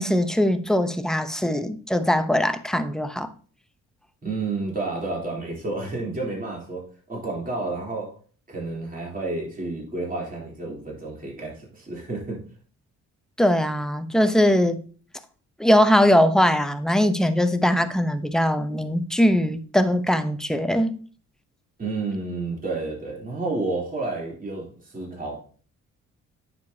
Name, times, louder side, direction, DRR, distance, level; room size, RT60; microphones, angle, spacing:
voice 1, 0.0-3.3 13.4-14.8 15.6-21.0, equal, ahead, 0.8 m, -21 dB
voice 2, 4.2-8.2 8.5-12.4 21.8-25.4, right 3 dB, 30° right, 3.3 m, -30 dB
9.3 x 6.8 x 2.8 m
cardioid pair, 90°, 30 cm